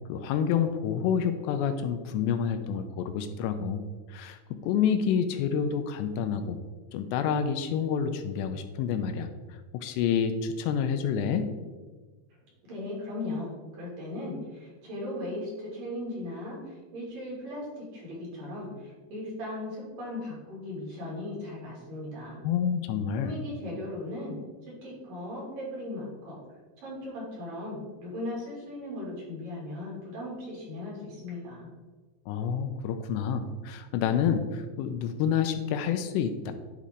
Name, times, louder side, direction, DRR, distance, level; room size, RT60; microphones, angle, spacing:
voice 1, 0.1-3.8 4.1-6.6 6.9-9.3 9.7-11.5 22.4-23.4 32.3-36.5, left 7 dB, 85° left, 8 dB, 2.7 m, -28 dB
voice 2, 12.7-22.4 23.1-24.4 24.7-26.4 26.8-31.7, left 1 dB, 55° right, -6 dB, 4.0 m, -37 dB
10.5 x 4.2 x 3.7 m, 1.3 s
omnidirectional pair, 5.0 m